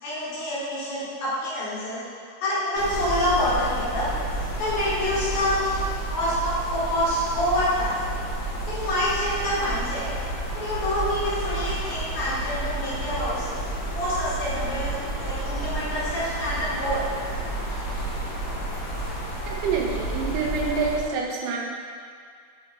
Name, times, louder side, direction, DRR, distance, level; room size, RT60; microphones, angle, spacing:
voice 1, 0.0-2.0 2.4-4.1 4.6-5.6 6.1-8.0 8.7-10.1 10.5-13.5 13.9-17.0, left 1 dB, 60° left, -10 dB, 3.5 m, -27 dB
sound 1, 2.7-21.0, right 2 dB, 40° left, 1.4 m, -31 dB
voice 2, 19.5-21.6, right 4 dB, 75° right, -1 dB, 2.3 m, -27 dB
8.2 x 5.6 x 4.3 m, 2.1 s
omnidirectional pair, 3.9 m